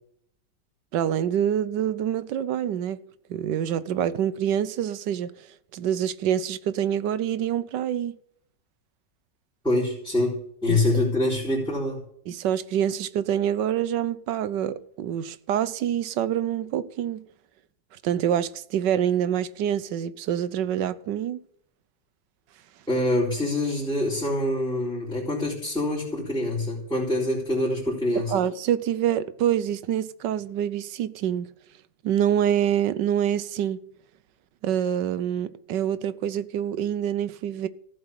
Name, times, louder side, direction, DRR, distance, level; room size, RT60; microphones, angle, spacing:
voice 1, 0.9-3.0 3.3-5.4 5.7-8.2 10.7-10.8 12.3-17.3 18.0-21.4 28.1-31.5 32.0-33.8 34.6-37.7, right 10 dB, 85° right, 1.4 m, -26 dB
voice 2, 9.6-12.0 22.9-28.3, left 1 dB, ahead, 4.0 m, -25 dB
14.5 x 7.8 x 8.5 m
omnidirectional pair, 1.8 m